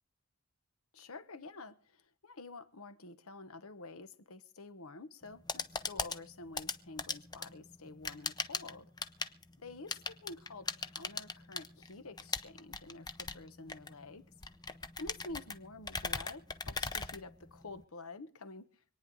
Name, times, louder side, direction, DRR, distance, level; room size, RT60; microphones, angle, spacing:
voice 1, 0.9-8.9 9.6-14.2 15.0-18.7, left 3 dB, 70° left, 1.1 m, -49 dB
sound 1, 5.2-17.8, left 4 dB, 20° left, 0.6 m, -40 dB
25.5 x 9.5 x 3.9 m
head